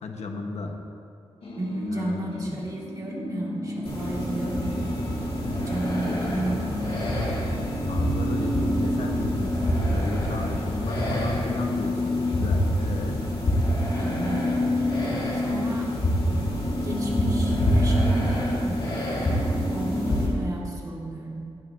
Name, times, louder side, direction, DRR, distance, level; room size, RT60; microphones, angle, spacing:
voice 1, 0.0-0.8 1.9-2.7 5.9-6.6 7.9-13.2, left 3 dB, 90° left, 3 dB, 1.1 m, -34 dB
sound 1, 1.4-10.3 10.6-20.4, left 1 dB, 70° left, 2.5 m, -32 dB
voice 2, 1.6-4.8 5.7-6.9 13.8-15.0 15.3-15.9 16.3-16.4 16.8-18.9 19.3-21.5, right 2 dB, 35° right, -3 dB, 1.9 m, -33 dB
sound 2, 3.8-20.3, equal, 50° left, 2.7 m, -27 dB
16.0 x 11.5 x 2.7 m, 2.6 s
wide cardioid pair, 160°, 11 cm